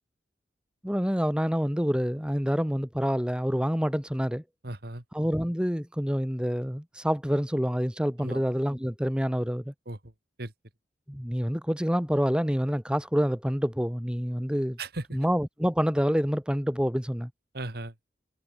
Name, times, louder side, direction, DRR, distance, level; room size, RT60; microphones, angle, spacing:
voice 1, 0.8-4.4 5.1-9.7 11.1-14.8 15.1-17.3, equal, 5° right, 2.7 m, -27 dB
voice 2, 4.6-5.0 8.2-8.4 9.9-10.1 10.4-10.5 14.8-15.2 17.5-18.1, right 2 dB, 60° right, 2.8 m, -37 dB
head